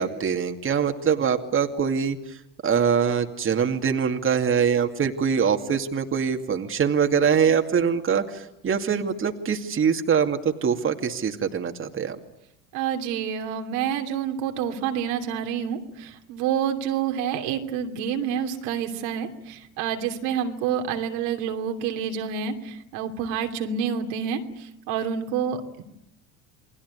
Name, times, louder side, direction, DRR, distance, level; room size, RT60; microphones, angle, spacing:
voice 1, 0.0-2.4 2.6-12.2, right 7 dB, 35° right, 5 dB, 2.4 m, -23 dB
voice 2, 12.7-25.8, right 8 dB, 70° right, 4 dB, 3.0 m, -28 dB
29.0 x 20.0 x 9.6 m, 0.83 s
hypercardioid pair, 75°, 37 cm